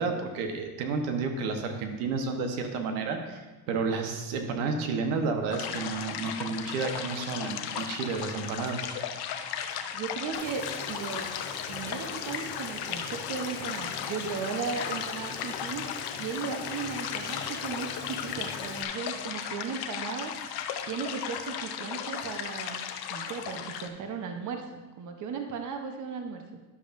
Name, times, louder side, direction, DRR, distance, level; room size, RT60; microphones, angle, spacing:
voice 1, 0.0-3.4 3.7-8.9, right 4 dB, 85° right, 4 dB, 1.2 m, -31 dB
sound 1, 5.5-23.9, left 8 dB, 55° left, 0.8 m, -36 dB
voice 2, 9.9-11.3 11.7-15.8 16.2-20.3 20.8-22.8 23.1-26.4, right 6 dB, 40° right, 4 dB, 0.9 m, -36 dB
Boiling, 10.3-18.8, left 6 dB, 75° left, 1.3 m, -41 dB
11.5 x 6.9 x 2.6 m, 1.2 s
supercardioid pair, 110°, 47 cm